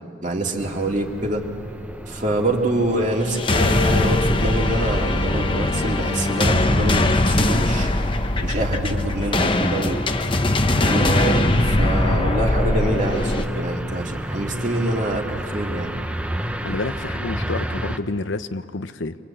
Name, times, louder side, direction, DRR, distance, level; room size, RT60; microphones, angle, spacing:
voice 1, 0.2-1.4 2.1-7.9 8.4-10.0 10.8-15.9, right 1 dB, 40° right, 1 dB, 2.5 m, -25 dB
sound 1, 0.6-18.0, equal, 5° right, 0.8 m, -32 dB
sound 2, 3.3-13.5, left 2 dB, 25° left, 0.9 m, -21 dB
voice 2, 16.6-19.2, left 3 dB, 80° left, 11 dB, 0.8 m, -29 dB
25.5 x 25.0 x 8.6 m, 2.4 s
head